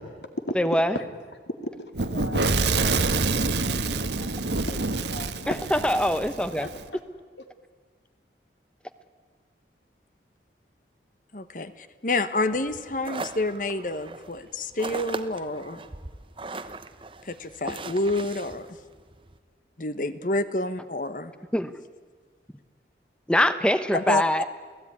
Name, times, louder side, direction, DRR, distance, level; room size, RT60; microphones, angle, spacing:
voice 1, 0.5-1.0 5.5-6.7 21.5-21.7 23.3-24.5, equal, 5° left, 11 dB, 0.9 m, -23 dB
voice 2, 2.0-4.3 4.7-4.8 5.1-5.8 6.6-6.7, left 1 dB, 75° left, 7 dB, 2.5 m, -37 dB
Fire / Explosion, 2.0-6.8, right 3 dB, 75° right, 1.4 m, -26 dB
voice 3, 11.3-15.8 17.2-18.8 19.8-21.3 23.9-24.2, left 2 dB, 45° left, 12 dB, 1.2 m, -28 dB
sound 1, 12.6-19.4, right 3 dB, 30° right, 1.0 m, -39 dB
29.0 x 17.5 x 9.7 m, 1.5 s
head